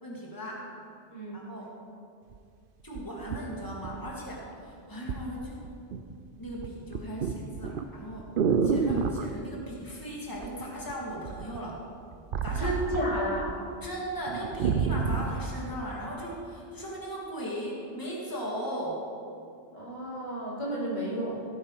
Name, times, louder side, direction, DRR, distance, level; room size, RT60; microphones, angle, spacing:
voice 1, 0.0-0.7 1.3-1.7 2.8-5.7 6.4-8.3 8.6-11.8 12.4-12.7 13.1-13.2 13.8-19.0, equal, 20° left, -3 dB, 2.2 m, -37 dB
voice 2, 1.1-1.5 12.6-13.5 19.7-21.5, right 1 dB, 40° left, -9 dB, 4.1 m, -32 dB
sound 1, 2.3-2.4 2.9-4.4 5.1-5.3 5.6-6.1 6.4-9.3 10.4-10.9 11.2-13.5 13.8-13.9 14.3-15.4 16.0-16.1, right 5 dB, 55° right, 0.8 m, -29 dB
17.0 x 8.7 x 4.8 m, 2.4 s
omnidirectional pair, 1.2 m